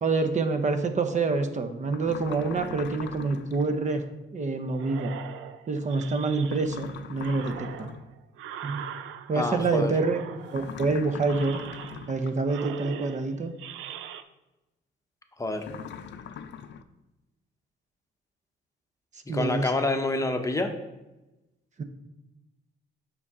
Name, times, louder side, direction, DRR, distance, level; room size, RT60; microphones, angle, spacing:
voice 1, 0.0-4.1 4.3-5.1 5.7-7.9 8.6-8.8 9.3-10.2 10.5-11.6 12.1-13.5 19.3-19.7 21.8-21.9, right 3 dB, 35° right, 7 dB, 0.8 m, -27 dB
sound 1, 1.9-3.7 6.4-8.1 10.5-12.5 15.6-16.8, left 8 dB, 65° left, 0.5 m, -41 dB
sound 2, 4.7-6.8 7.2-9.6 9.9-10.8 11.2-12.2 12.5-14.2, right 9 dB, 90° right, 0.5 m, -41 dB
voice 2, 9.3-9.9 15.4-15.6 19.3-20.7, left 2 dB, 15° left, 5 dB, 0.8 m, -27 dB
7.0 x 5.4 x 3.6 m, 1.0 s
cardioid pair, 90°, 20 cm